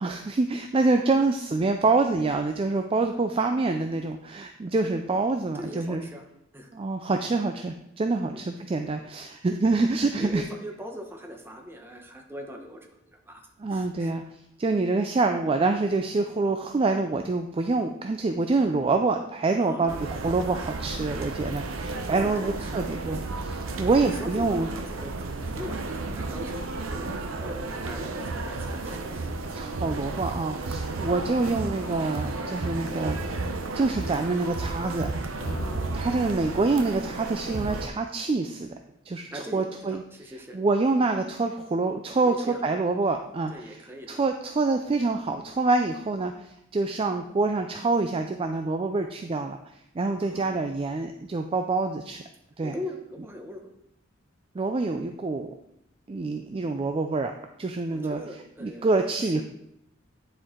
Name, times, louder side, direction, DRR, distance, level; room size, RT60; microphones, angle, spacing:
voice 1, 0.0-6.0 6.7-10.4 13.6-14.2 14.6-19.9 20.2-24.7 29.5-33.2 33.7-35.1 35.9-38.7 39.1-39.3 39.5-40.0 40.5-43.8 44.1-49.6 49.9-52.2 52.6-52.7 54.5-55.5 56.1-57.3 57.6-58.2 58.6-59.4, right 3 dB, 30° right, 5 dB, 0.4 m, -26 dB
voice 2, 5.5-6.3 6.5-6.7 8.2-8.5 10.2-14.1 19.6-20.1 22.1-22.9 23.8-25.1 25.5-29.3 35.6-36.1 39.3-40.6 42.2-42.6 43.5-44.2 50.2-50.7 52.6-53.7 57.9-59.4, equal, 10° right, 2 dB, 1.0 m, -41 dB
sound 1, 19.9-37.9, right 3 dB, 85° right, 0.7 m, -33 dB
sound 2, 35.4-37.3, left 2 dB, 55° left, 1.0 m, -42 dB
10.0 x 4.6 x 3.7 m, 0.79 s
head